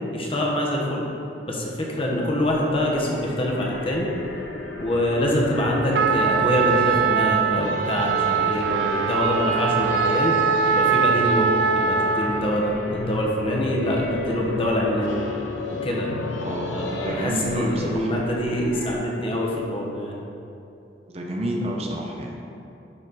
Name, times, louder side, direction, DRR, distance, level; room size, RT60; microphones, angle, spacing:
voice 1, 0.1-1.0 1.5-4.1 4.8-10.3 10.6-11.5 11.7-15.2 15.7-16.1 16.7-20.2, left 1 dB, 30° left, -2 dB, 1.0 m, -25 dB
sound 1, 2.1-18.9, left 2 dB, 85° left, 0.8 m, -33 dB
Trumpet, 5.9-12.5, right 6 dB, 60° right, 0.3 m, -22 dB
voice 2, 16.4-18.1 21.1-22.3, right 1 dB, 35° right, 0 dB, 0.7 m, -30 dB
11.5 x 4.2 x 4.1 m, 2.8 s
head